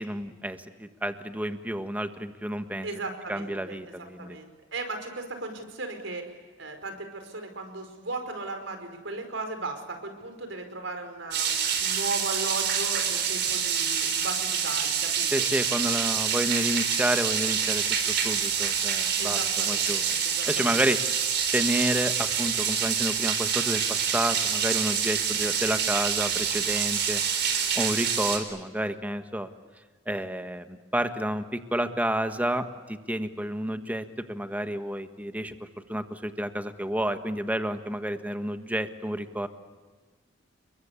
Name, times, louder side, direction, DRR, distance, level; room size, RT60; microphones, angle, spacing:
voice 1, 0.0-2.9 3.3-4.4 15.3-19.4 19.7-20.2 20.5-21.0 21.5-27.2 27.7-29.5 30.1-35.5 35.9-39.5, right 1 dB, 10° right, 8 dB, 1.5 m, -30 dB
voice 2, 2.8-6.3 6.6-15.5 19.2-19.9 20.2-20.8, right 3 dB, 75° right, 6 dB, 5.0 m, -36 dB
sound 1, 11.3-28.4, right 7 dB, 60° right, 4.3 m, -27 dB
30.0 x 22.5 x 8.4 m, 1.4 s
head